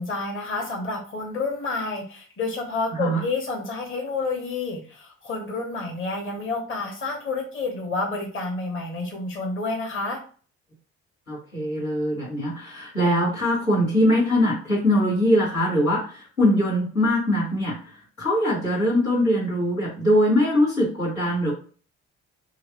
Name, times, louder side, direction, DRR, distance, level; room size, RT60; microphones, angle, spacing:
voice 1, 0.0-10.2, left 3 dB, 30° left, 0 dB, 1.2 m, -29 dB
voice 2, 2.9-3.2 11.3-17.8 18.2-21.5, equal, 85° left, -9 dB, 1.7 m, -22 dB
3.2 x 3.1 x 2.6 m, 0.40 s
figure-of-eight pair, 45°, 40 cm